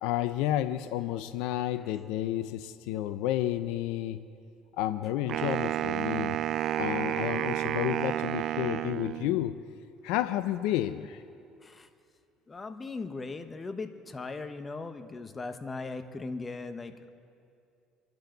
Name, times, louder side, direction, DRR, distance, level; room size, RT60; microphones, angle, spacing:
voice 1, 0.0-4.2 4.7-6.4 6.8-9.6 10.0-11.2, left 13 dB, 80° left, 10 dB, 0.6 m, -31 dB
Wind instrument woodwind instrument, 5.3-9.5, right 11 dB, 60° right, 0.4 m, -31 dB
voice 2, 12.5-16.9, left 3 dB, 25° left, 8 dB, 1.3 m, -38 dB
27.5 x 11.5 x 4.0 m, 2.5 s
supercardioid pair, 80°, 0 cm